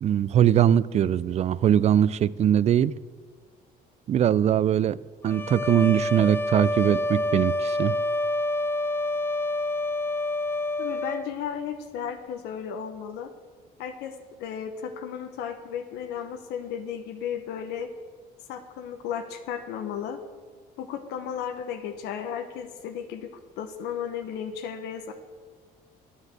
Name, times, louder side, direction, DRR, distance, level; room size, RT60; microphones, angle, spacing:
voice 1, 0.0-2.9 4.1-5.0 5.2-8.0, right 10 dB, 40° right, 20 dB, 0.4 m, -21 dB
sound 1, 5.3-11.3, left 1 dB, 15° left, 0.6 m, -27 dB
voice 2, 10.8-13.3 13.8-17.9 18.5-20.2 20.8-23.3 23.6-25.1, left 8 dB, 90° left, 6 dB, 0.9 m, -34 dB
9.8 x 8.8 x 7.5 m, 1.5 s
cardioid pair, 110°, 17 cm